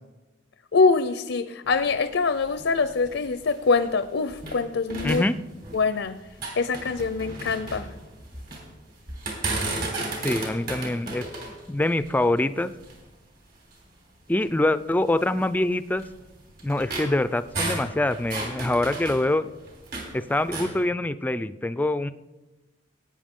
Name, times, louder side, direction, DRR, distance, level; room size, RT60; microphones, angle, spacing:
voice 1, 0.7-5.2 5.7-6.2 6.6-7.9, left 4 dB, 80° left, 0.5 m, -24 dB
sound 1, 1.6-4.6 4.9-6.0 6.3-8.6 9.1-13.1 13.7-13.8 14.3-14.4 15.2-20.1 20.4-20.8, right 2 dB, 50° right, 3.6 m, -34 dB
voice 2, 5.0-5.4 10.2-11.2 11.7-12.7 14.3-16.0 16.6-19.5 20.1-22.1, left 1 dB, 10° left, 0.3 m, -24 dB
19.0 x 9.2 x 3.7 m
head